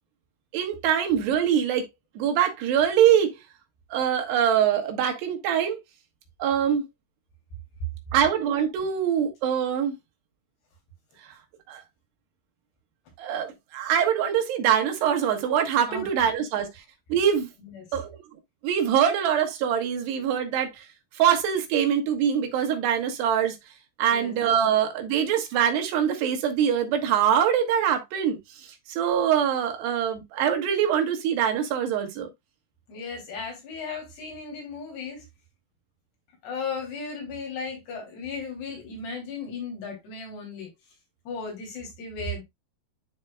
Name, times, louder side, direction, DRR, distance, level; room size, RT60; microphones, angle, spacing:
voice 1, 0.5-1.9 2.2-3.4 3.9-5.8 6.4-6.8 8.1-10.0 11.2-11.3 11.7-11.8 13.2-16.7 17.1-17.5 17.9-18.2 18.6-20.9 21.2-23.6 24.0-28.4 28.9-32.3, right 9 dB, 90° right, 3.5 m, -23 dB
voice 2, 32.9-35.3 36.4-40.7 41.3-42.4, left 4 dB, 80° left, 5.2 m, -35 dB
11.0 x 4.4 x 2.3 m
omnidirectional pair, 4.7 m